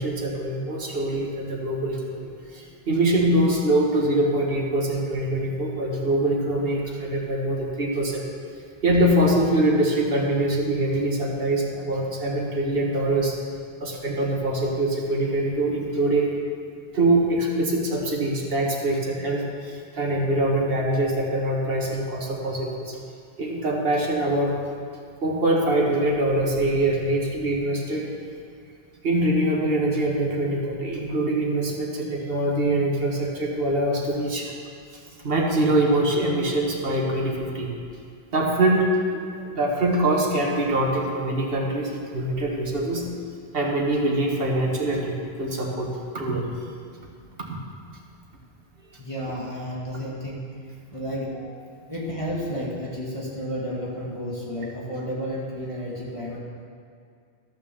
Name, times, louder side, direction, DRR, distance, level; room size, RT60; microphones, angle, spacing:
voice 1, 0.0-8.3 8.8-13.3 13.8-16.3 16.9-23.0 23.4-24.6 25.2-28.1 29.0-34.5 35.2-37.7 38.3-43.1 43.5-45.9 46.1-46.5, right 1 dB, 65° right, -2 dB, 1.8 m, -24 dB
voice 2, 49.0-50.5 50.9-56.4, equal, 30° left, -5 dB, 2.2 m, -32 dB
13.0 x 6.1 x 7.1 m, 2.3 s
omnidirectional pair, 1.1 m